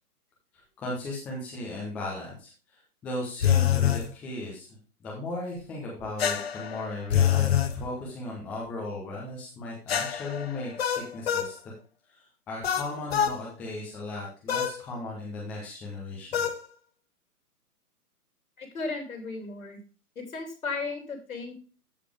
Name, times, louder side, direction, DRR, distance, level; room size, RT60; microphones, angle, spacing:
voice 1, 0.8-2.5 3.0-4.7 5.0-11.6 12.5-16.4, left 2 dB, 5° left, -3 dB, 0.6 m, -36 dB
sound 1, 3.4-4.1 6.2-7.8 9.9-11.5 12.6-13.4 14.5-14.8 16.3-16.6, left 9 dB, 40° left, 1.0 m, -25 dB
voice 2, 18.6-19.8 20.1-21.5, left 4 dB, 60° left, 5 dB, 3.2 m, -35 dB
13.5 x 5.0 x 3.4 m, 0.35 s
figure-of-eight pair, 130°, 46 cm